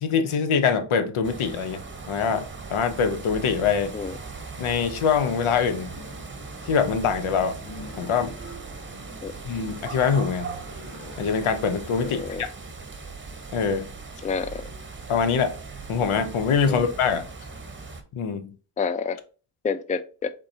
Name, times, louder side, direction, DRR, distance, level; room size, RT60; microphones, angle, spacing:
voice 1, 0.0-1.8 2.1-3.9 4.6-5.9 6.7-7.6 8.0-8.3 9.4-10.6 11.2-12.5 13.5-13.9 15.1-15.5 15.9-17.3 18.1-18.5, left 6 dB, 80° left, 0.7 m, -24 dB
sound 1, 1.2-18.0, right 4 dB, 25° right, 0.8 m, -39 dB
sound 2, 5.9-12.4, left 1 dB, 40° left, 2.1 m, -46 dB
voice 2, 12.1-12.4 14.2-14.6 16.7-16.9 18.8-19.2 19.6-20.3, left 5 dB, 15° left, 0.3 m, -28 dB
3.9 x 3.7 x 2.7 m
cardioid pair, 40°, 49 cm